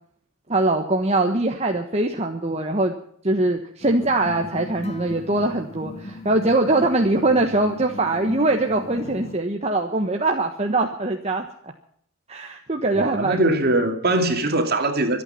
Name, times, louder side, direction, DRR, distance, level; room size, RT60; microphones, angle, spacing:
voice 1, 0.5-2.9 3.2-11.7 12.3-13.4, right 2 dB, 30° right, 1.3 m, -22 dB
sound 1, 3.8-9.4, left 2 dB, 30° left, 2.0 m, -38 dB
voice 2, 13.0-15.2, right 2 dB, 45° right, 2.6 m, -21 dB
25.0 x 9.2 x 5.8 m
head